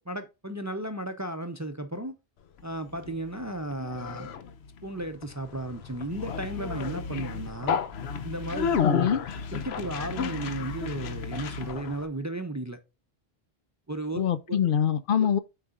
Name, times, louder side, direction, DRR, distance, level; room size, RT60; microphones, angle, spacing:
voice 1, 0.0-2.2 2.6-4.3 4.8-7.8 8.2-9.2 9.5-12.8 13.9-14.6 15.2-15.3, right 1 dB, 20° right, 0.5 m, -35 dB
Conversation, 2.6-12.1, left 6 dB, 90° left, 0.9 m, -32 dB
voice 2, 8.8-9.2 14.2-15.4, left 8 dB, 65° left, 0.7 m, -24 dB
7.8 x 4.9 x 2.4 m
omnidirectional pair, 1.0 m